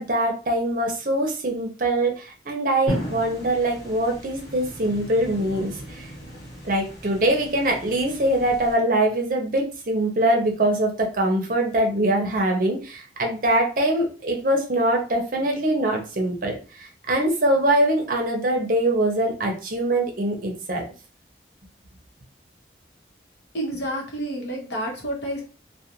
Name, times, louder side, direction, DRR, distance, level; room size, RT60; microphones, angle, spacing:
voice 1, 0.0-6.1 6.6-20.8, right 1 dB, 45° right, 1 dB, 0.6 m, -23 dB
sound 1, 2.9-8.7, equal, 40° left, 1.2 m, -36 dB
voice 2, 23.5-25.4, right 1 dB, 70° left, -3 dB, 0.9 m, -29 dB
2.4 x 2.1 x 2.8 m, 0.36 s
head